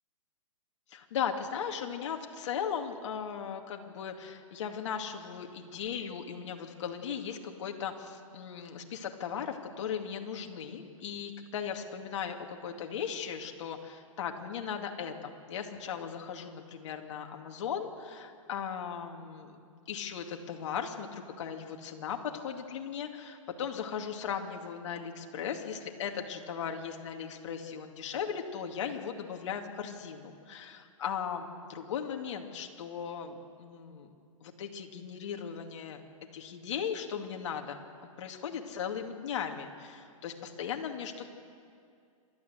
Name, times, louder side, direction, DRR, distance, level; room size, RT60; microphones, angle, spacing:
voice 1, 0.9-19.6 19.9-34.1 34.4-37.8 38.2-41.3, left 7 dB, 55° left, 4 dB, 2.4 m, -37 dB
28.0 x 12.5 x 8.1 m, 2.3 s
hypercardioid pair, 140°, 18 cm